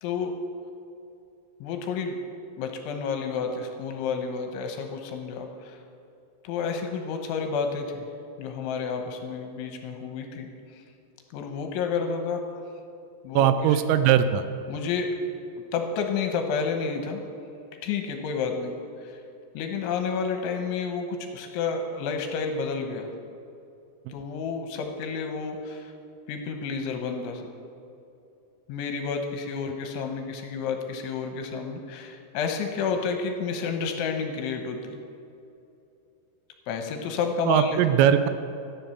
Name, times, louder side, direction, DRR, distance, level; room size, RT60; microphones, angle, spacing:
voice 1, 0.0-0.3 1.6-2.2 2.6-5.8 6.4-8.1 8.4-10.5 11.3-12.4 13.2-13.5 14.7-15.1 15.7-17.2 17.8-18.7 19.0-19.2 19.5-23.1 24.1-25.9 26.3-27.5 28.7-35.0 36.7-37.8, left 5 dB, 75° left, 4 dB, 3.1 m, -30 dB
voice 2, 13.3-14.4 37.5-38.3, right 9 dB, 85° right, 10 dB, 3.2 m, -20 dB
14.5 x 10.5 x 7.1 m, 2.7 s
omnidirectional pair, 6.0 m